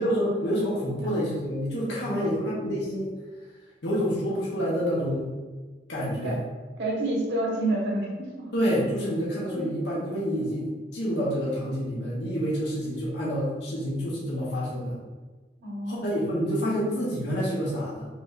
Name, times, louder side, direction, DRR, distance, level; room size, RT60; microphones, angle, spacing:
voice 1, 0.0-3.1 3.8-5.3 5.9-6.4 8.5-15.0 15.9-18.1, equal, 80° left, -6 dB, 1.0 m, -28 dB
voice 2, 6.8-8.5 9.5-9.7 15.6-16.2, right 1 dB, 85° right, -3 dB, 1.3 m, -29 dB
4.9 x 3.2 x 2.5 m, 1.3 s
head